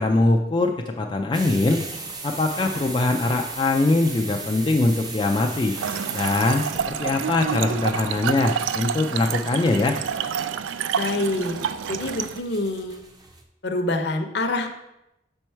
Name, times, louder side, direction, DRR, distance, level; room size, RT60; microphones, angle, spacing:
voice 1, 0.0-1.8 2.2-5.8 6.1-10.0, left 2 dB, 25° left, 2 dB, 0.3 m, -22 dB
sound 1, 1.3-13.4, right 3 dB, 20° right, 0.6 m, -38 dB
Trickle dribble / Fill (with liquid), 5.7-12.4, right 7 dB, 85° right, 0.3 m, -28 dB
voice 2, 10.9-11.6 11.9-13.0 13.6-14.7, left 2 dB, 60° left, 5 dB, 0.7 m, -26 dB
6.1 x 4.5 x 4.4 m, 0.89 s
head